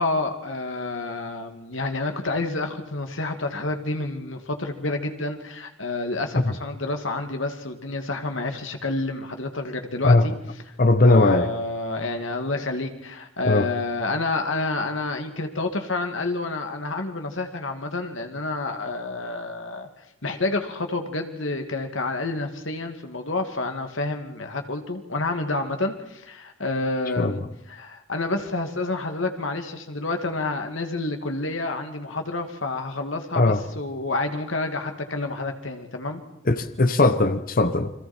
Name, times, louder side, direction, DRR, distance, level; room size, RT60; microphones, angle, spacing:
voice 1, 0.0-10.3 11.1-19.9 20.2-27.4 27.7-36.2, left 2 dB, 80° left, 5 dB, 2.3 m, -29 dB
voice 2, 10.8-11.5 13.4-13.7 27.2-27.4 33.3-33.6 36.5-37.9, left 2 dB, 45° left, 10 dB, 1.0 m, -19 dB
29.5 x 23.0 x 4.5 m, 0.81 s
head